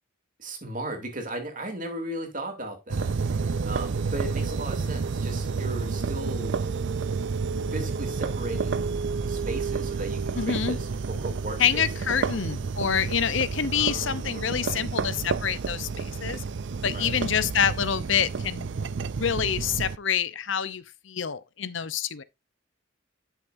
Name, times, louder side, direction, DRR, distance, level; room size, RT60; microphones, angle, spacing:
voice 1, 0.4-6.5 7.7-8.9 9.3-12.2 13.7-14.9 16.9-17.2, right 1 dB, 40° right, 2.8 m, -37 dB
sound 1, 2.9-20.0, right 4 dB, 60° right, 0.5 m, -30 dB
voice 2, 10.4-10.8 11.6-16.4 16.8-18.8 19.1-22.2, left 8 dB, 65° left, 0.7 m, -27 dB
11.0 x 7.2 x 2.6 m
head